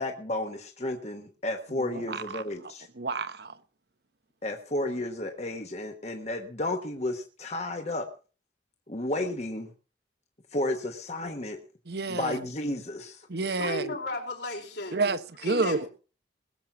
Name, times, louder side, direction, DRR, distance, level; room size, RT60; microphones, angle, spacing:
voice 1, 0.0-2.9 4.4-8.1 8.9-9.7 10.5-11.6 12.1-13.3, left 1 dB, 35° left, 1.3 m, -32 dB
voice 2, 1.8-2.4 2.9-3.6 11.9-12.4 13.3-14.0 14.9-15.9, right 3 dB, 60° right, 1.0 m, -30 dB
voice 3, 13.6-15.0 15.4-15.9, left 2 dB, 70° left, 4.4 m, -34 dB
20.5 x 7.6 x 5.9 m
head